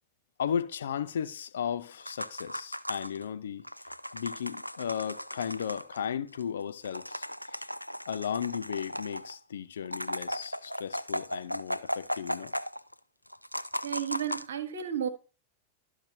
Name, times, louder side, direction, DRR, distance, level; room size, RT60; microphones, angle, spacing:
voice 1, 0.4-3.7 4.1-7.6 8.1-12.5, left 8 dB, 65° left, 0.7 m, -35 dB
sound 1, 2.0-3.3 3.6-6.0 6.3-6.4 6.7-9.4 9.8-12.9 13.3-14.5, equal, 90° left, 0.3 m, -37 dB
voice 2, 13.8-15.1, right 9 dB, 65° right, 1.3 m, -32 dB
13.0 x 6.0 x 2.8 m
figure-of-eight pair, 90°, 0 cm